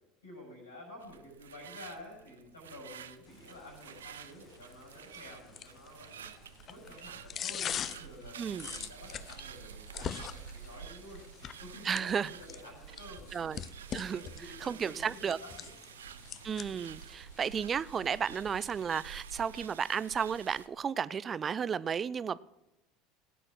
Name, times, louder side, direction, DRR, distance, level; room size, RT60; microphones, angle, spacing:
voice 1, 0.2-6.3 6.7-11.2 11.6-13.7 13.9-15.7 16.0-16.4, left 1 dB, 85° left, 0 dB, 6.3 m, -51 dB
sound 1, 1.0-20.7, right 8 dB, 80° right, 0.6 m, -50 dB
sound 2, 3.3-19.2, left 9 dB, 40° left, 0.5 m, -45 dB
voice 2, 11.8-12.3 13.3-13.6 13.9-14.3 14.6-15.4 16.4-22.4, right 7 dB, 30° right, 20 dB, 0.4 m, -33 dB
16.5 x 9.0 x 6.1 m, 0.95 s
figure-of-eight pair, 70°, 0 cm